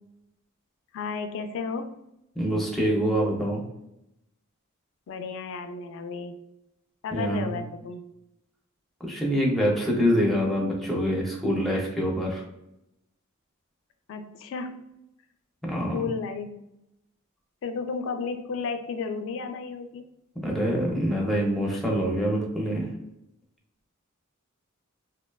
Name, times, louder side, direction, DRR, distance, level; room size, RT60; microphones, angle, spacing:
voice 1, 0.9-1.9 5.1-6.3 7.0-8.0 14.1-14.9 15.9-16.5 17.6-20.0, left 4 dB, 65° left, 7 dB, 0.3 m, -33 dB
voice 2, 2.4-3.6 7.1-7.6 9.0-12.4 15.7-16.1 20.4-22.9, equal, ahead, -2 dB, 0.5 m, -25 dB
2.8 x 2.1 x 2.2 m, 0.84 s
head